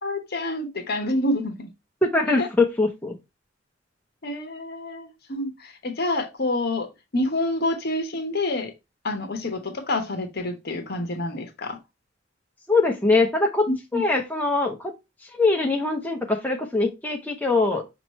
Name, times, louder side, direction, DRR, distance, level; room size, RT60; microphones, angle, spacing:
voice 1, 0.0-1.7 2.4-2.5 4.2-6.9 7.1-8.7 9.0-11.8 13.7-14.0, left 1 dB, 55° left, 1.0 m, -27 dB
voice 2, 2.0-3.1 12.7-13.7 13.9-14.9 15.4-17.8, left 3 dB, 10° left, 0.6 m, -22 dB
5.5 x 3.0 x 2.9 m
head